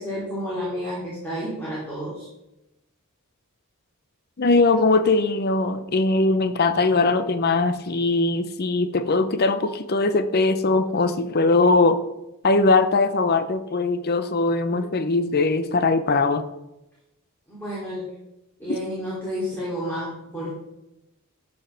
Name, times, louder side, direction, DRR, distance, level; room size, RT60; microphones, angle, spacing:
voice 1, 0.0-2.3 17.5-18.1 18.6-20.5, equal, 10° left, -7 dB, 3.0 m, -30 dB
voice 2, 4.4-12.0 12.4-16.5, left 3 dB, 50° left, 10 dB, 0.7 m, -20 dB
12.0 x 5.4 x 5.8 m, 0.92 s
head